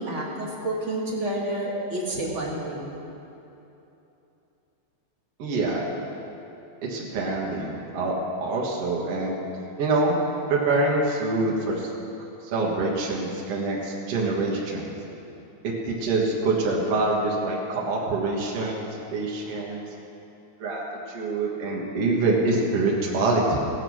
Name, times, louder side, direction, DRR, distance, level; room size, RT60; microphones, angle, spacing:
voice 1, 0.0-3.0, right 1 dB, 30° right, -3 dB, 1.4 m, -29 dB
voice 2, 5.4-5.8 6.8-8.2 8.4-9.5 9.8-10.2 10.5-11.9 12.5-14.9 15.6-19.8 20.6-23.6, right 2 dB, 55° right, -3 dB, 2.3 m, -25 dB
17.0 x 7.8 x 6.2 m, 3.0 s
omnidirectional pair, 3.5 m